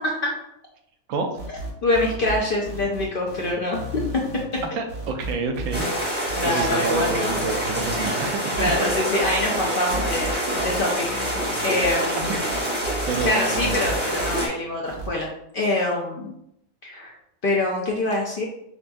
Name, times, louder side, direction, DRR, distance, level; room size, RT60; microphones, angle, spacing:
sound 1, 1.4-14.4 14.9-15.1, right 2 dB, 50° right, 1.0 m, -34 dB
voice 1, 1.5-4.0 6.3-7.3 8.6-11.2 11.6-12.3 13.2-15.3 15.5-16.3 16.8-17.1 17.4-18.4, left 2 dB, 60° left, -1 dB, 0.6 m, -25 dB
voice 2, 4.8-6.1 6.4-8.7 10.5-10.6 13.1-13.8, right 4 dB, 80° right, 5 dB, 1.0 m, -28 dB
sound 2, 5.7-14.5, equal, 10° right, 0.8 m, -26 dB
5.1 x 2.6 x 2.2 m, 0.78 s
omnidirectional pair, 1.4 m